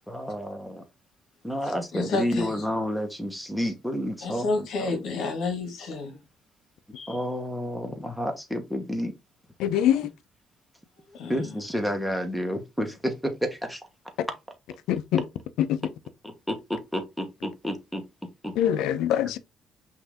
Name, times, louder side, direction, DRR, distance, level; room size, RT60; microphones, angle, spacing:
voice 1, 0.1-0.8 1.4-4.9 7.1-9.1 11.3-13.8 16.2-18.0 18.4-18.5, equal, ahead, 1.1 m, -30 dB
voice 2, 1.7-2.6 4.2-6.1 6.9-7.2 11.1-11.5, left 3 dB, 70° left, 1.7 m, -30 dB
voice 3, 9.6-10.1 14.9-15.2 15.6-15.8 18.6-19.4, left 10 dB, 85° left, 0.5 m, -23 dB
5.7 x 2.7 x 3.4 m
cardioid pair, 110°, 0 cm